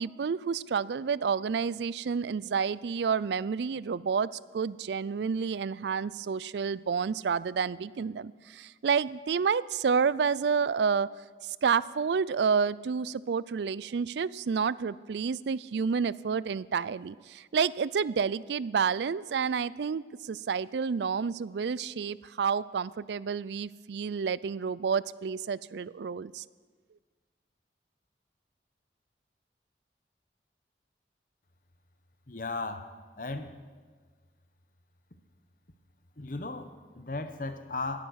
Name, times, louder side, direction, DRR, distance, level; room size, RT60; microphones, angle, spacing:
voice 1, 0.0-4.3 4.5-11.1 11.6-26.4, right 6 dB, 75° right, 20 dB, 0.4 m, -29 dB
voice 2, 32.3-33.6 36.2-38.0, left 3 dB, 50° left, 9 dB, 1.0 m, -36 dB
19.0 x 9.2 x 6.4 m, 1.5 s
head